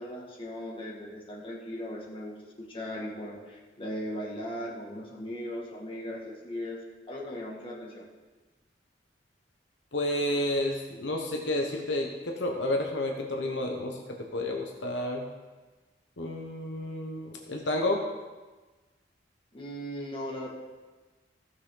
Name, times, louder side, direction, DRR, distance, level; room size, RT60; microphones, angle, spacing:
voice 1, 0.0-6.8 7.1-8.0 19.5-20.5, equal, 30° left, -4 dB, 2.0 m, -38 dB
voice 2, 9.9-15.3 16.2-18.1, left 1 dB, 75° left, 1 dB, 1.0 m, -30 dB
15.0 x 6.4 x 3.9 m, 1.3 s
head